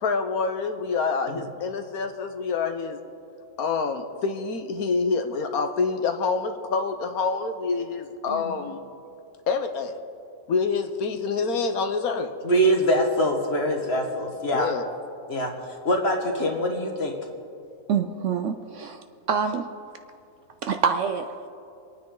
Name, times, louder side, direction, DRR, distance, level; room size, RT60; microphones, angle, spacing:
voice 1, 0.0-3.0 3.6-8.9 9.5-10.0 10.5-12.3 14.5-14.9, left 4 dB, 75° left, 7 dB, 1.3 m, -27 dB
voice 2, 12.4-14.7 15.3-15.5 15.8-17.2, equal, 40° left, 2 dB, 1.8 m, -24 dB
voice 3, 17.9-19.7 20.6-21.5, right 6 dB, 65° right, 7 dB, 0.8 m, -26 dB
24.5 x 9.4 x 3.9 m, 2.5 s
omnidirectional pair, 1.6 m